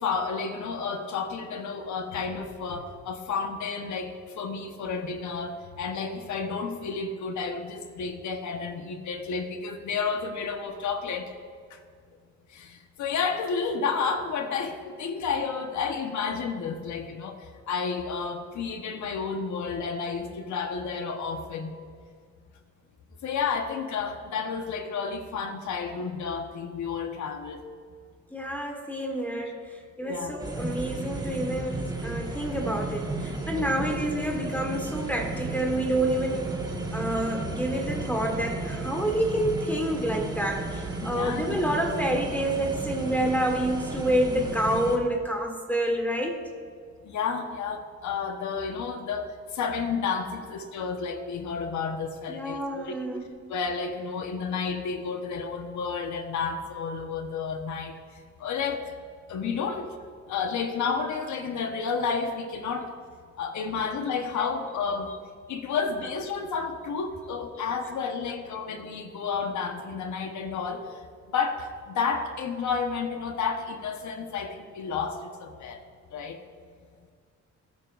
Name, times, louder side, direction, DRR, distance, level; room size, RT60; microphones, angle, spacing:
voice 1, 0.0-11.3 11.7-11.8 12.5-17.4 17.7-21.7 23.2-27.6 30.0-30.4 33.5-33.7 41.0-41.6 47.0-53.0 53.5-57.9 58.4-58.8 59.3-59.9 60.3-62.9 63.4-65.2 65.5-70.8 71.3-75.8 76.1-76.4, left 5 dB, 70° left, 6 dB, 1.3 m, -31 dB
voice 2, 28.3-36.6 36.9-46.4 52.3-53.5, right 1 dB, 5° left, 2 dB, 1.6 m, -28 dB
sound 1, 30.4-45.0, right 2 dB, 15° right, 1.7 m, -34 dB
22.0 x 9.8 x 2.6 m, 2.1 s
cardioid pair, 90°, 30 cm